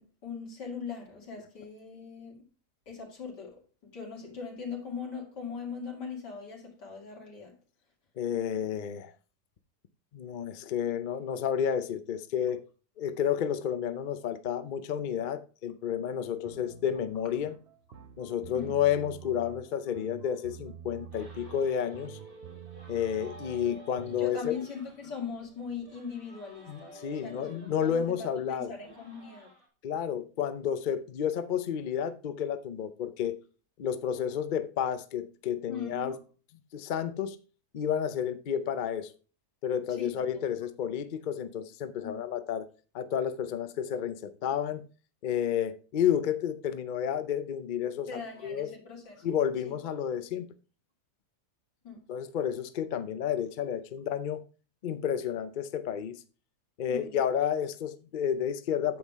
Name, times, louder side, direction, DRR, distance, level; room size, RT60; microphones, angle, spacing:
voice 1, 0.0-2.4 2.9-3.6 3.9-7.5 18.5-18.8 24.1-29.5 35.7-36.2 39.9-40.4 42.0-42.1 48.1-49.3 49.6-49.7 51.8-52.0 56.9-57.2, left 5 dB, 85° left, 3.1 m, -40 dB
voice 2, 8.2-9.1 10.1-12.6 13.0-17.5 18.2-22.2 22.9-24.5 26.7-28.7 29.8-33.4 33.8-36.2 36.7-37.4 37.7-39.1 39.6-42.7 42.9-44.8 45.2-48.7 49.2-50.5 52.1-54.4 54.8-56.2 56.8-59.0, left 9 dB, 70° left, 0.4 m, -31 dB
sound 1, 16.4-24.3, right 9 dB, 50° right, 0.8 m, -48 dB
sound 2, 21.1-29.7, right 1 dB, 90° right, 3.5 m, -52 dB
9.2 x 7.5 x 3.6 m
omnidirectional pair, 1.8 m